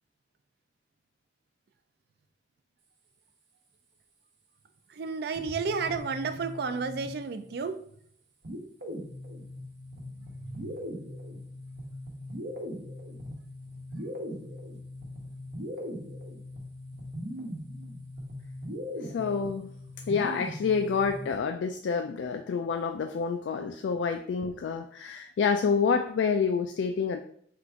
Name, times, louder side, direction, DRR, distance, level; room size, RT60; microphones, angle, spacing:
voice 1, 4.9-7.8 10.6-10.7, right 5 dB, 60° right, 9 dB, 0.4 m, -32 dB
sound 1, 5.4-7.5 8.4-21.4, left 1 dB, 80° right, 1.0 m, -40 dB
voice 2, 19.1-19.7 20.1-27.2, left 5 dB, 85° left, 6 dB, 0.3 m, -28 dB
3.8 x 2.4 x 4.4 m, 0.63 s
head